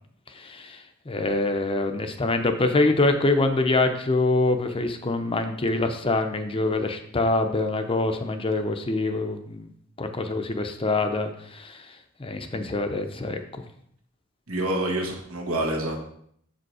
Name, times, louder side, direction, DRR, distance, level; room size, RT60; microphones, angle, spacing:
voice 1, 0.3-0.8 1.1-9.7 10.0-11.8 12.2-13.4, left 2 dB, 25° left, 7 dB, 0.6 m, -25 dB
voice 2, 14.5-16.1, right 1 dB, 85° right, 0 dB, 1.8 m, -27 dB
6.8 x 5.1 x 4.8 m, 0.67 s
head